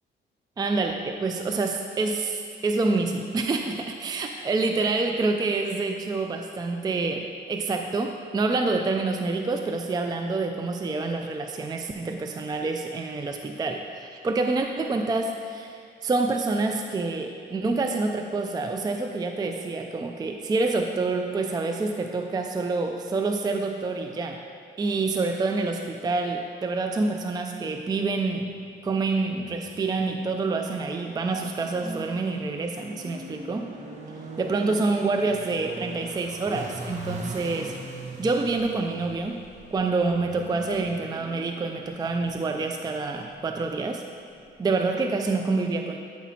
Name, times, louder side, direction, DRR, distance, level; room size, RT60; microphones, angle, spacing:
voice 1, 0.6-24.4 24.8-28.5 28.8-33.7 34.4-37.7 38.2-39.4 39.7-44.0 44.6-46.0, right 3 dB, 20° right, 4 dB, 0.4 m, -27 dB
sound 1, 28.0-44.7, right 1 dB, 35° right, 1.0 m, -42 dB
9.1 x 6.0 x 2.8 m, 2.3 s
cardioid pair, 90°, 20 cm